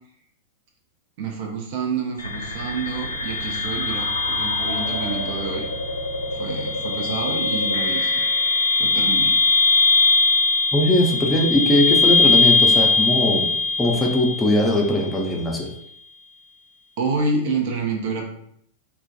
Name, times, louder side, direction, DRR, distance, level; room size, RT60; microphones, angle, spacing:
voice 1, 1.2-5.7 6.3-8.2 8.8-9.4 17.0-18.3, right 4 dB, 50° right, 1 dB, 0.5 m, -28 dB
sound 1, 2.2-15.2, left 3 dB, 85° left, 0.4 m, -21 dB
voice 2, 10.7-13.5 13.8-15.7, left 1 dB, 10° left, -1 dB, 0.5 m, -20 dB
2.2 x 2.1 x 2.7 m, 0.70 s
figure-of-eight pair, 95°, 0 cm